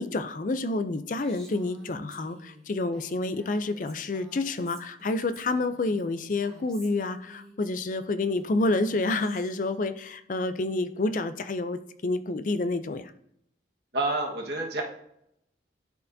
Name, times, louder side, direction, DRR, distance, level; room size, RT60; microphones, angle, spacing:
voice 1, 0.0-13.1, left 2 dB, 45° left, 11 dB, 0.4 m, -29 dB
Female speech woman speaking, 1.2-7.6 8.4-9.8, equal, 5° left, 1.6 m, -51 dB
voice 2, 13.9-14.8, right 2 dB, 70° right, -1 dB, 1.5 m, -28 dB
11.5 x 4.6 x 2.7 m, 0.76 s
head